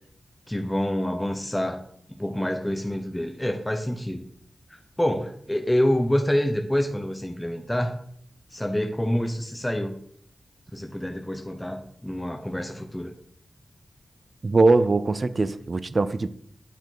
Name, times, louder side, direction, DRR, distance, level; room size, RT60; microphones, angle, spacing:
voice 1, 0.5-1.8 2.2-4.2 4.7-8.0 8.5-10.0 10.7-13.1, left 1 dB, 10° left, 4 dB, 0.7 m, -27 dB
voice 2, 14.4-16.3, right 3 dB, 50° right, 14 dB, 0.4 m, -21 dB
9.0 x 4.4 x 4.0 m, 0.64 s
wide cardioid pair, 85°, 0 cm